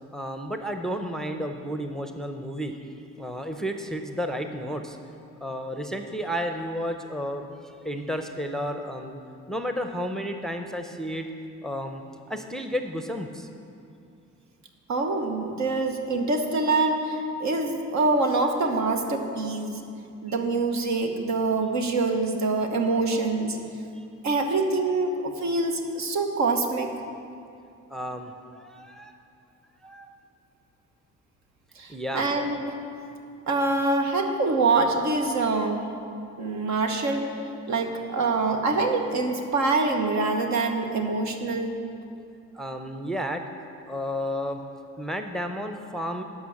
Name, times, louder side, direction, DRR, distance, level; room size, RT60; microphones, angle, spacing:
voice 1, 0.1-2.8 3.2-5.0 5.4-9.2 9.5-11.3 11.6-12.0 12.3-13.5 24.0-24.1 27.9-28.3 28.6-29.1 29.8-30.1 31.9-32.3 42.5-43.4 43.9-44.6 45.0-46.2, equal, ahead, 5 dB, 0.6 m, -32 dB
voice 2, 14.9-19.8 20.2-23.6 24.2-26.9 31.8-32.6 33.5-35.9 36.4-37.2 37.7-41.8, right 3 dB, 65° right, 4 dB, 1.2 m, -25 dB
11.5 x 5.5 x 7.2 m, 2.5 s
cardioid pair, 90°, 30 cm